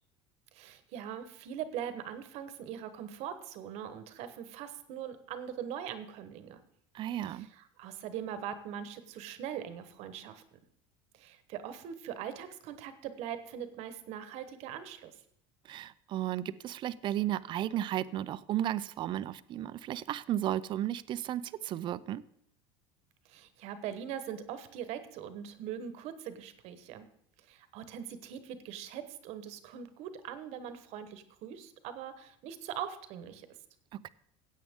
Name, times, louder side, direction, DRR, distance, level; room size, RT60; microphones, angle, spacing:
voice 1, 0.5-6.6 7.3-10.4 11.1-15.1 23.3-27.1 27.5-33.5, right 9 dB, 60° right, 1.1 m, -41 dB
voice 2, 6.9-7.5 15.7-22.2 34.0-34.1, right 12 dB, 40° right, 0.5 m, -34 dB
15.5 x 8.4 x 3.6 m
cardioid pair, 130°, 12 cm